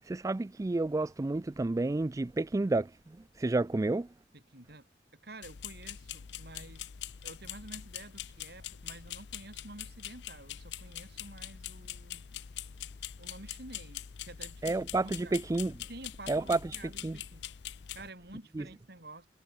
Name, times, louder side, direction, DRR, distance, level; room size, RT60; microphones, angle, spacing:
voice 1, 0.0-4.1 14.6-15.8 16.3-16.8 17.0-17.2 18.6-18.7, right 2 dB, 20° right, 0.3 m, -30 dB
voice 2, 4.3-4.9 5.2-6.9 7.2-12.2 13.2-15.4 15.9-17.4 17.9-19.3, right 2 dB, 65° right, 6.4 m, -50 dB
sound 1, 5.4-18.1, left 10 dB, 75° left, 0.6 m, -44 dB
head